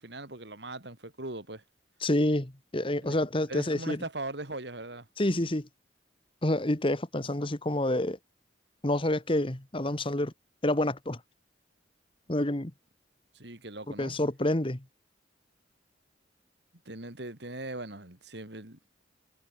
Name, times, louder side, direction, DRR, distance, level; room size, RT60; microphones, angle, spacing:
voice 1, 0.0-1.6 3.0-3.2 3.5-5.1 13.3-14.2 16.9-18.8, right 2 dB, 60° right, 3.8 m, -40 dB
voice 2, 2.0-4.0 5.2-5.7 6.4-8.2 8.8-10.3 10.6-11.2 12.3-12.7 14.0-14.8, left 1 dB, 30° left, 1.6 m, -28 dB
head